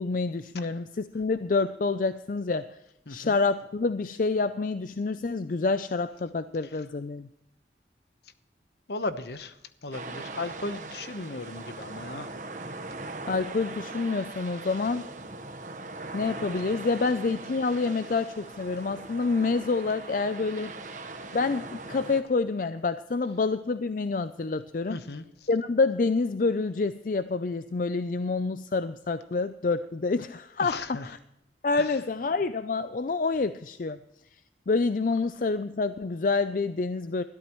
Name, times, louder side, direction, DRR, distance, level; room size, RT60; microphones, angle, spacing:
voice 1, 0.0-2.6 3.1-7.3 13.3-15.0 16.1-20.7 21.3-25.0 25.5-31.2 31.6-34.0 34.7-37.2, left 3 dB, 45° left, 12 dB, 0.4 m, -27 dB
voice 2, 3.1-3.4 8.9-9.5 9.8-12.3 17.8-18.0 24.9-25.2 30.6-31.1 31.8-31.9, left 2 dB, 65° left, 11 dB, 1.0 m, -36 dB
sound 1, 9.9-22.2, right 3 dB, 45° right, 1.2 m, -40 dB
21.0 x 13.5 x 3.1 m, 0.85 s
head